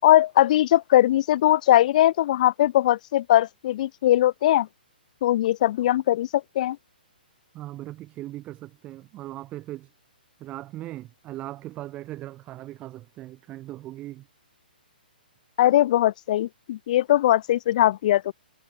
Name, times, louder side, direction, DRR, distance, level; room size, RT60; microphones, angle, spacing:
voice 1, 0.0-4.7 5.2-6.8 15.6-18.3, left 13 dB, 50° left, 7.2 m, -20 dB
voice 2, 7.5-9.9 10.4-14.3, right 15 dB, 25° right, 7.1 m, -39 dB
hypercardioid pair, 135°, 5 cm